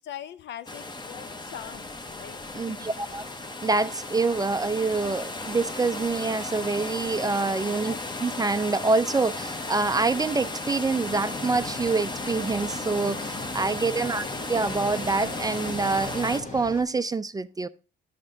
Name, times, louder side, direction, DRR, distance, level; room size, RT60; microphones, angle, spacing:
voice 1, 0.0-1.9 2.2-2.9 7.5-8.0, left 10 dB, 65° left, 0.5 m, -42 dB
sound 1, 0.7-16.4, left 2 dB, 20° left, 0.8 m, -35 dB
voice 2, 2.5-3.3 3.6-7.9 8.2-17.7, right 3 dB, 20° right, 0.3 m, -26 dB
sound 2, 9.4-16.8, left 2 dB, 40° left, 1.3 m, -40 dB
9.6 x 6.6 x 2.6 m
cardioid pair, 90°, 20 cm